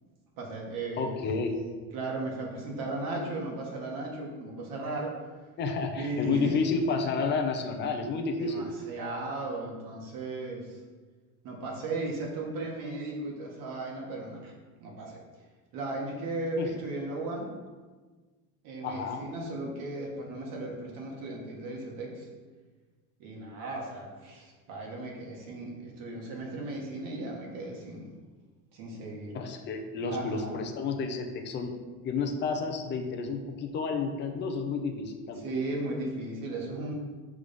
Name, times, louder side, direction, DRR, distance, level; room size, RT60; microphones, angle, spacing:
voice 1, 0.4-1.1 1.9-5.1 6.0-6.6 8.4-10.8 11.4-14.5 14.8-15.2 15.7-17.5 18.6-22.3 23.2-28.1 28.7-29.3 30.1-30.6 35.4-36.9, right 2 dB, 60° right, -1 dB, 1.8 m, -36 dB
voice 2, 1.0-1.6 5.6-8.7 16.6-16.7 18.8-19.3 29.3-31.7 32.0-35.5, left 4 dB, 30° left, 4 dB, 0.6 m, -31 dB
6.5 x 3.7 x 5.3 m, 1.4 s
cardioid pair, 160°, 37 cm